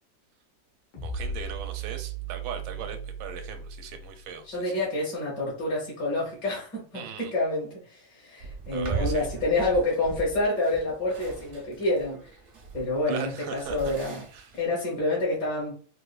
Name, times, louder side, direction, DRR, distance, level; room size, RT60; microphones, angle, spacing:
sound 1, 0.9-4.4, right 4 dB, 85° left, 1.9 m, -36 dB
voice 1, 1.0-4.7 6.9-7.3 8.7-9.3 13.1-13.9 14.3-14.6, right 7 dB, 85° right, 5 dB, 1.4 m, -39 dB
voice 2, 4.5-12.3 12.7-14.2 14.5-15.7, left 2 dB, 55° left, -5 dB, 1.7 m, -28 dB
sound 2, 8.4-14.7, right 5 dB, 65° right, 0.7 m, -38 dB
4.2 x 2.5 x 2.3 m, 0.41 s
omnidirectional pair, 2.2 m